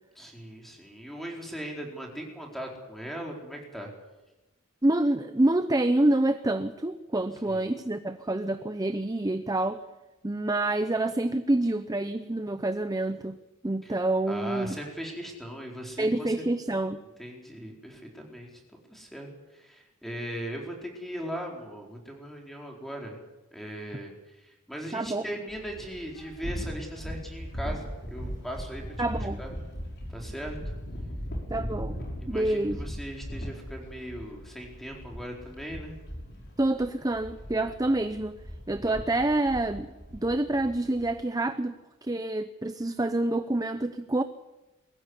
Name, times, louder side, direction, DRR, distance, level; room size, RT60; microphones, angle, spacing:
voice 1, 0.2-3.9 7.4-7.7 13.8-13.9 14.3-16.5 17.2-18.5 18.9-23.2 23.5-24.1 24.4-28.8 29.1-29.5 30.1-30.6 32.2-35.9 38.7-38.8, equal, ahead, 0 dB, 4.4 m, -39 dB
voice 2, 4.8-9.8 10.2-13.4 13.6-14.8 16.0-17.0 24.9-25.2 29.0-29.4 31.5-32.0 32.3-32.8 36.6-38.4 38.7-39.9 40.1-41.8 42.0-44.2, right 2 dB, 15° right, 10 dB, 0.7 m, -27 dB
sound 1, 25.5-41.2, equal, 50° left, 5.9 m, -39 dB
22.5 x 15.0 x 9.9 m, 1.1 s
head